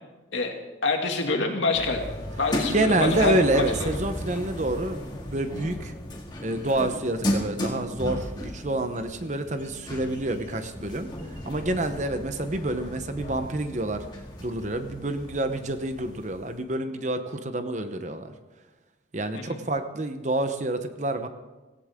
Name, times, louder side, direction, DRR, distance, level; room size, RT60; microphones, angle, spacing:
voice 1, 0.8-2.0 2.4-4.0 19.3-19.6, left 3 dB, 80° left, 2 dB, 2.3 m, -26 dB
sound 1, 1.7-16.5, left 1 dB, 20° left, 2.2 m, -35 dB
voice 2, 2.7-5.9 6.4-14.0 14.4-18.3 19.1-21.3, right 1 dB, 40° right, 8 dB, 0.9 m, -28 dB
17.0 x 16.5 x 3.7 m, 1.2 s
head